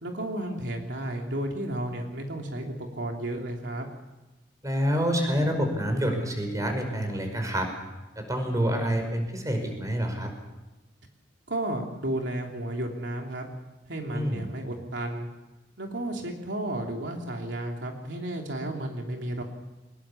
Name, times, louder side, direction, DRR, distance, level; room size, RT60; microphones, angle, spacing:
voice 1, 0.0-3.9 11.5-13.5 13.9-15.3 15.8-19.4, right 1 dB, 75° right, 1 dB, 3.2 m, -33 dB
voice 2, 4.6-7.7 8.2-10.3 14.1-14.5, equal, 20° right, 4 dB, 5.3 m, -27 dB
23.5 x 21.0 x 7.1 m, 1.1 s
head